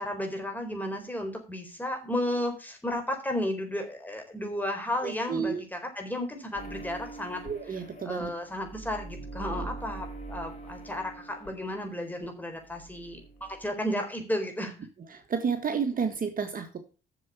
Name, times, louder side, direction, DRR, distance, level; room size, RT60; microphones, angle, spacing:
voice 1, 0.0-7.4 8.0-14.7, left 1 dB, 10° left, 4 dB, 4.1 m, -33 dB
voice 2, 5.0-5.6 7.4-8.3 9.6-9.7 15.1-16.8, right 6 dB, 45° right, 7 dB, 1.6 m, -31 dB
sound 1, 6.5-12.3 12.5-13.7, right 2 dB, 35° left, 5.3 m, -43 dB
7.7 x 7.1 x 8.3 m, 0.34 s
cardioid pair, 90°, 20 cm